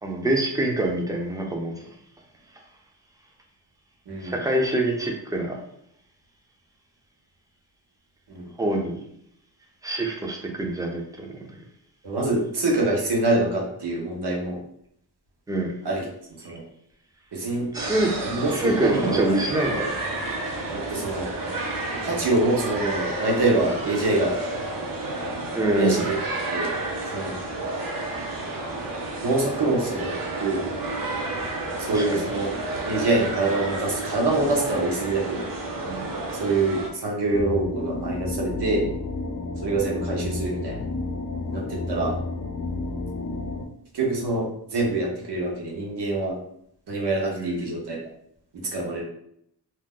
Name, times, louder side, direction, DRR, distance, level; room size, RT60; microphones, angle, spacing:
voice 1, 0.0-1.7 4.2-5.6 8.6-9.0 9.8-11.4 15.5-15.8 17.7-18.1 18.5-19.9 25.5-26.0 31.9-32.0 35.8-36.1 47.3-47.6, right 1 dB, 10° right, 0 dB, 0.5 m, -25 dB
voice 2, 4.1-4.4 8.3-8.5 12.0-14.6 15.8-16.0 16.4-16.6 17.3-17.7 18.2-19.2 20.7-21.3 22.0-24.3 25.7-26.1 26.5-26.7 27.1-27.3 29.2-30.6 31.9-32.5 32.9-35.5 36.4-38.8 39.6-40.8 41.5-42.2 43.9-46.4 46.9-48.0 48.7-49.0, right 2 dB, 70° right, -2 dB, 1.1 m, -25 dB
sound 1, 17.7-36.9, right 2 dB, 55° right, 0.7 m, -31 dB
sound 2, 37.3-43.6, left 3 dB, 40° left, 0.6 m, -31 dB
2.7 x 2.1 x 3.6 m, 0.70 s
wide cardioid pair, 100°, 42 cm